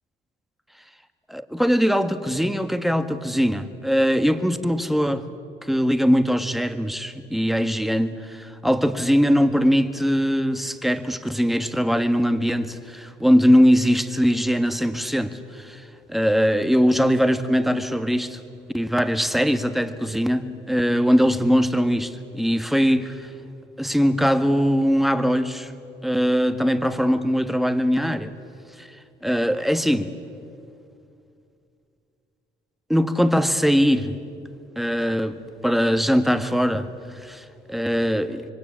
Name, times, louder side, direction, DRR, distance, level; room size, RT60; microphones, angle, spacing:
voice 1, 1.3-5.2 5.6-15.8 16.1-18.4 18.7-23.3 23.8-25.7 26.0-28.3 28.8-28.9 29.2-30.1 32.9-34.2 34.8-38.5, equal, ahead, 1.5 m, -21 dB
26.5 x 23.5 x 8.8 m
cardioid pair, 90°, 20 cm